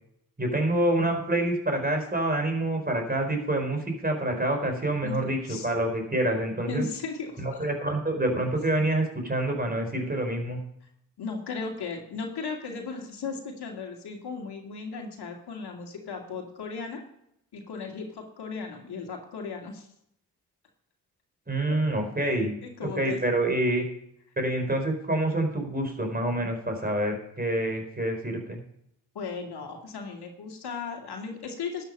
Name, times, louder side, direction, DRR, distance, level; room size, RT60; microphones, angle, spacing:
voice 1, 0.4-6.8 7.4-10.6 21.5-22.5 22.8-23.9 24.4-28.6, right 1 dB, 20° right, 4 dB, 4.4 m, -27 dB
voice 2, 6.7-7.7 11.2-17.0 17.5-19.9 21.7-21.8 22.6-23.2 29.1-31.8, left 5 dB, 60° left, 2 dB, 2.4 m, -36 dB
12.0 x 8.9 x 5.4 m, 0.76 s
hypercardioid pair, 50°, 44 cm